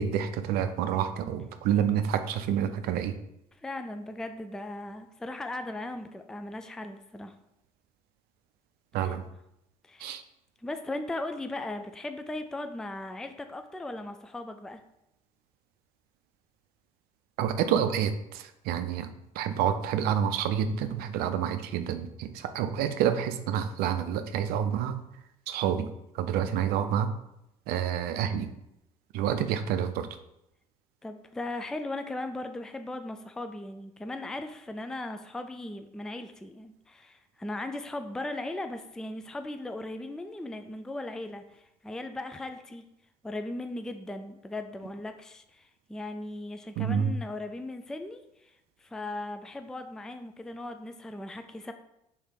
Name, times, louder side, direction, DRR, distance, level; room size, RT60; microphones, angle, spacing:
voice 1, 0.0-3.2 8.9-9.2 10.0-10.2 17.4-19.1 19.4-25.0 25.5-25.9 26.1-27.1 27.7-28.5 29.1-30.1 46.8-47.1, right 9 dB, 60° right, 9 dB, 0.5 m, -28 dB
voice 2, 3.6-7.3 9.0-9.2 9.8-10.2 10.6-14.8 31.0-42.8 43.2-51.7, left 2 dB, 5° left, 7 dB, 0.3 m, -38 dB
3.2 x 3.2 x 4.6 m, 0.84 s
hypercardioid pair, 55°, 18 cm